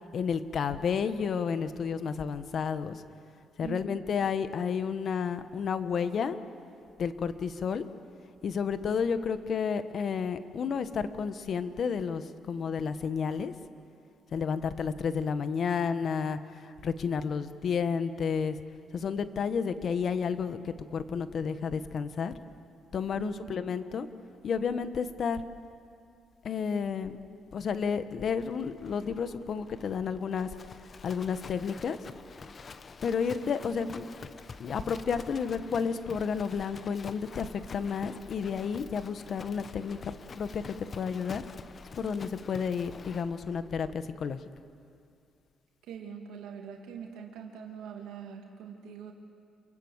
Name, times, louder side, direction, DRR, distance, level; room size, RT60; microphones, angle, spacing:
voice 1, 0.1-3.0 3.6-6.4 7.0-7.8 8.4-13.5 14.3-18.6 18.9-22.3 22.9-24.1 24.4-25.4 26.4-27.1 27.5-30.5 31.0-32.0 33.0-34.0 34.6-41.4 41.9-44.4, left 6 dB, 55° left, 11 dB, 1.4 m, -31 dB
voice 2, 3.6-4.0 23.2-23.6 33.3-33.5 45.8-49.1, right 7 dB, 90° right, 1 dB, 2.6 m, -43 dB
Livestock farm animals working animals, 28.4-43.9, left 5 dB, 40° left, 1.1 m, -48 dB
28.5 x 22.5 x 8.2 m, 2.4 s
cardioid pair, 90°, 0 cm